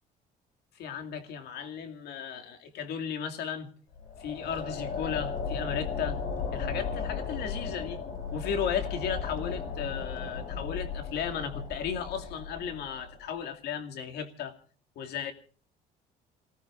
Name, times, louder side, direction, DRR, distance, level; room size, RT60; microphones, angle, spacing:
voice 1, 0.7-3.7 4.2-6.2 6.5-8.0 8.3-14.6 15.0-15.3, left 7 dB, 75° left, 5 dB, 2.4 m, -35 dB
sound 1, 3.9-13.2, left 5 dB, 55° left, 5.5 m, -35 dB
29.5 x 18.0 x 2.5 m, 0.43 s
cardioid pair, 110°, 17 cm